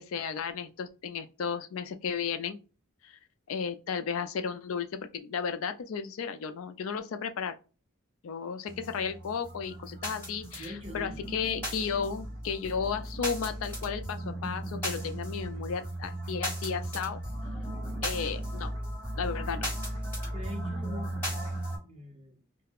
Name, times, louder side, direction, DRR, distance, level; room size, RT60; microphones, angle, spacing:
voice 1, 0.0-2.6 3.0-3.2 3.5-7.5 8.2-17.2 18.0-18.7 19.2-19.7, left 6 dB, 75° left, 0.4 m, -34 dB
sound 1, 8.7-21.8, right 1 dB, 10° left, 1.5 m, -36 dB
voice 2, 10.5-11.2 20.3-21.3 21.8-22.4, left 1 dB, 30° right, 0.8 m, -43 dB
2.3 x 2.2 x 3.4 m
head